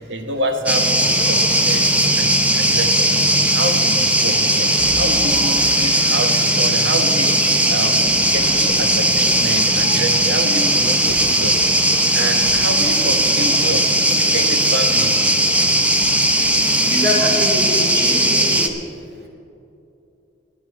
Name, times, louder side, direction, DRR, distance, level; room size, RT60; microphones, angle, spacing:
voice 1, 0.1-1.9 2.1-3.3 3.5-4.7 5.0-7.4 7.7-8.0 8.3-11.6 12.1-15.2 15.9-16.0, right 1 dB, 90° right, 5 dB, 1.3 m, -27 dB
sound 1, 0.7-18.7, right 1 dB, 10° right, 0.8 m, -17 dB
voice 2, 16.8-18.7, equal, 60° right, -1 dB, 2.5 m, -24 dB
22.0 x 8.8 x 3.7 m, 2.7 s
head